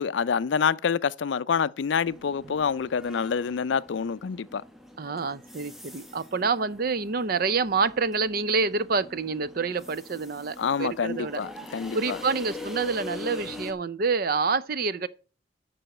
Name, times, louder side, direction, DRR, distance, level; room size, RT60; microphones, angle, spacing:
voice 1, 0.0-4.6 10.6-12.2, left 6 dB, 70° left, 0.4 m, -27 dB
sound 1, 2.1-13.7, left 2 dB, ahead, 1.1 m, -43 dB
voice 2, 5.0-11.4 11.9-15.1, right 4 dB, 50° right, 0.6 m, -27 dB
7.8 x 6.2 x 7.7 m
head